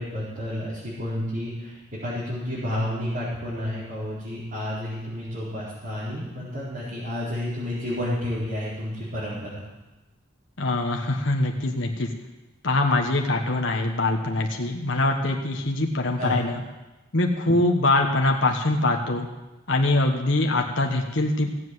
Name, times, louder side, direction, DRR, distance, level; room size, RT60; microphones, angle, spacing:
voice 1, 0.0-9.6 16.2-16.4, left 1 dB, 45° right, -12 dB, 4.4 m, -30 dB
voice 2, 10.6-12.1 12.6-16.6 17.1-19.3 19.7-21.5, left 2 dB, 70° left, 2 dB, 1.3 m, -23 dB
16.5 x 7.9 x 7.8 m, 1.1 s
head